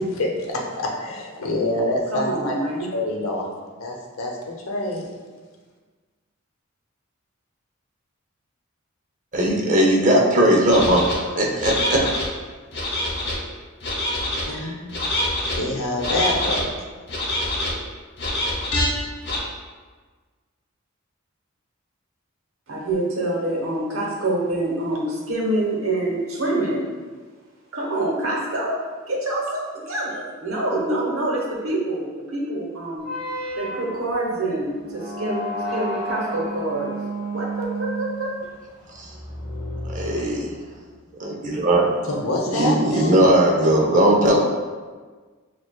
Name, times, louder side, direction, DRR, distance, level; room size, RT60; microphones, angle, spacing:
voice 1, 0.0-2.6 2.9-3.5 3.8-5.0 14.4-14.8 15.6-16.7 42.1-43.1, left 1 dB, 80° left, -1 dB, 0.7 m, -26 dB
voice 2, 2.2-2.9 22.7-26.9 27.7-33.0 33.6-36.9 37.3-38.3, right 1 dB, 85° right, -3 dB, 0.9 m, -26 dB
voice 3, 9.3-11.1 11.4-12.0 39.0-39.1 39.9-40.5 41.1-42.2 42.5-44.4, right 1 dB, 40° right, -1 dB, 0.6 m, -18 dB
sound 1, 10.7-11.1 11.6-12.3 12.7-13.4 13.8-14.4 14.9-15.6 16.0-16.6 17.1-17.7 18.2-18.9 19.2-19.4, left 1 dB, 55° left, 0.9 m, -25 dB
sound 2, 33.0-40.8, right 1 dB, 5° right, 1.2 m, -32 dB
6.4 x 2.4 x 2.2 m, 1.4 s
head